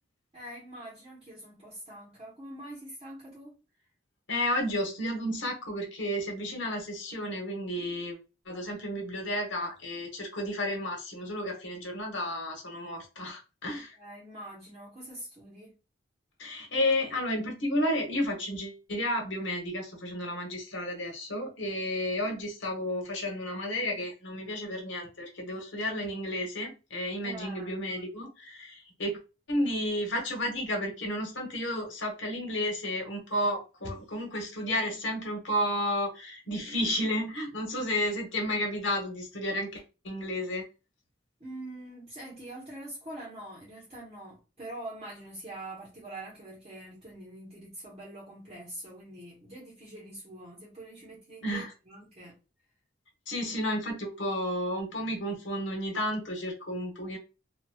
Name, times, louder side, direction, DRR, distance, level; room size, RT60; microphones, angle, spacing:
voice 1, 0.3-3.6 14.0-15.7 27.2-27.8 41.4-52.3 53.4-53.5, right 1 dB, 30° right, 1.1 m, -44 dB
voice 2, 4.3-8.2 8.5-14.0 16.4-29.2 29.5-40.6 51.4-51.7 53.3-57.2, left 1 dB, 85° left, 1.1 m, -32 dB
2.9 x 2.6 x 2.3 m
head